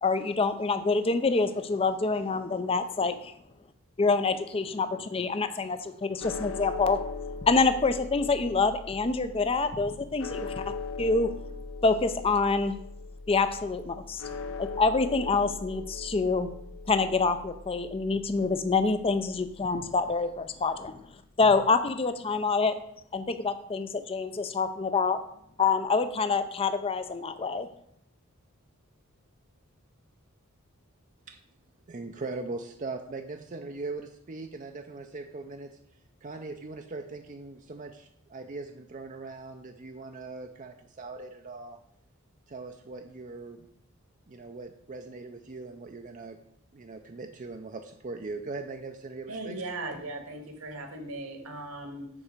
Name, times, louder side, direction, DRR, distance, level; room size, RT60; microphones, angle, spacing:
voice 1, 0.0-3.3 4.0-7.0 7.4-10.5 11.0-11.3 11.8-12.7 13.3-14.2 14.6-16.5 16.9-21.0 21.4-22.8 23.1-25.2 25.6-27.7, left 4 dB, 25° left, 10 dB, 0.5 m, -26 dB
sound 1, 6.2-20.4, left 4 dB, 60° left, 0.7 m, -40 dB
voice 2, 31.9-35.8 36.2-41.8 42.5-43.7 44.3-46.4 46.7-49.6, right 3 dB, 35° right, 5 dB, 0.5 m, -40 dB
voice 3, 49.3-52.1, right 2 dB, 75° right, 5 dB, 1.7 m, -38 dB
7.1 x 4.7 x 6.7 m, 0.71 s
head